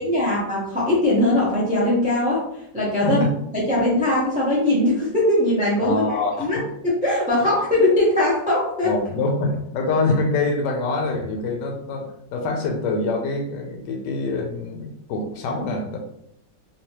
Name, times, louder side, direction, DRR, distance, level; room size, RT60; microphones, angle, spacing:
voice 1, 0.0-2.4 2.7-3.2 3.5-9.0, left 1 dB, 5° right, -7 dB, 0.6 m, -21 dB
voice 2, 5.8-6.6 8.8-16.0, left 3 dB, 75° left, 3 dB, 1.3 m, -25 dB
3.1 x 3.0 x 2.9 m, 0.75 s
omnidirectional pair, 2.0 m